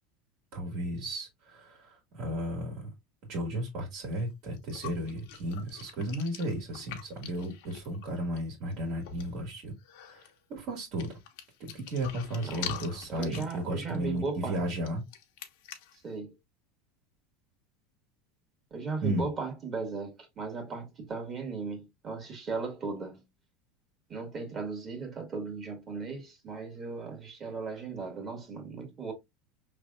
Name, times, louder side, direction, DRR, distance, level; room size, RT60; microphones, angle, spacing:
voice 1, 0.5-2.9 3.3-9.7 10.1-11.2 11.6-15.0 19.0-19.3, right 1 dB, 55° right, 1.8 m, -34 dB
sound 1, 4.1-4.2 4.6-8.4 8.7-8.8 9.0-9.4 9.8-10.4 11.0-16.0, left 9 dB, 70° left, 1.0 m, -44 dB
voice 2, 12.4-12.7 13.1-14.6 15.9-16.4 18.7-23.2 24.1-29.1, right 4 dB, 30° right, 1.7 m, -37 dB
5.3 x 3.3 x 2.4 m
supercardioid pair, 140°, 0 cm